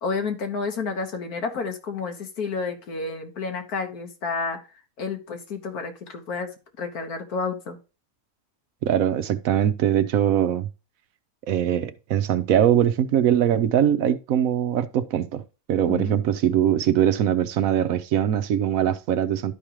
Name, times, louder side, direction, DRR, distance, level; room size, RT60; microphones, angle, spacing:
voice 1, 0.0-4.6 5.0-6.5 6.8-7.8 15.9-16.2, left 4 dB, 80° left, 1.8 m, -30 dB
voice 2, 8.8-10.7 11.5-15.4 15.7-19.5, right 10 dB, 70° right, 1.1 m, -22 dB
11.5 x 5.0 x 3.0 m
omnidirectional pair, 1.6 m